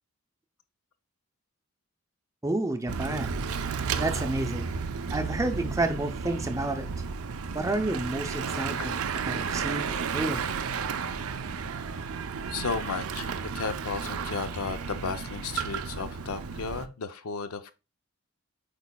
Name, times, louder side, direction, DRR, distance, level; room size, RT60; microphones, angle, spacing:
voice 1, 2.4-3.4 4.0-4.7 5.1-6.9 7.5-9.0 9.2-10.5, right 2 dB, 15° right, 0.5 m, -30 dB
Bicycle / Mechanisms, 2.9-16.9, right 5 dB, 80° right, 0.5 m, -33 dB
voice 2, 12.5-13.3 13.5-17.7, left 5 dB, 80° left, 0.6 m, -34 dB
8.3 x 5.0 x 2.3 m
head